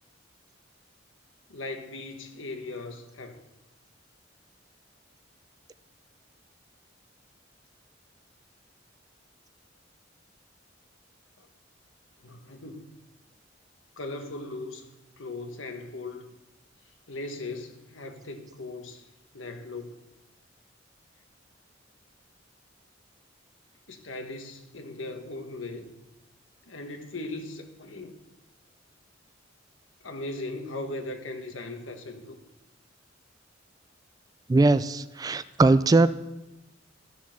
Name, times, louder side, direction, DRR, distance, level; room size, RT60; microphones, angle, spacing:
voice 1, 1.5-3.4 11.4-11.5 12.2-13.0 14.0-14.9 15.2-16.3 17.1-19.1 19.3-20.0 23.9-25.9 26.7-28.1 30.0-32.4, left 2 dB, 85° left, 1.3 m, -38 dB
voice 2, 34.5-36.1, right 3 dB, 20° right, 0.3 m, -20 dB
12.5 x 7.1 x 5.9 m
head